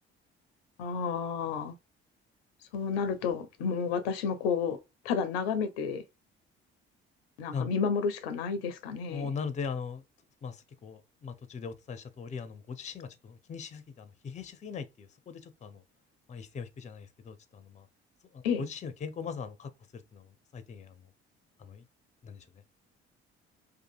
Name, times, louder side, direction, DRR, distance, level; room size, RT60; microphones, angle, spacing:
voice 1, 0.8-1.7 2.7-4.8 5.0-6.0 7.4-9.3 18.4-18.6, left 6 dB, 75° left, 0.5 m, -31 dB
voice 2, 9.1-10.0 10.4-15.8 16.3-17.9 18.3-21.1 21.6-21.9 22.2-22.6, left 5 dB, 25° left, 0.5 m, -40 dB
2.6 x 2.4 x 2.4 m
figure-of-eight pair, 50°, 31 cm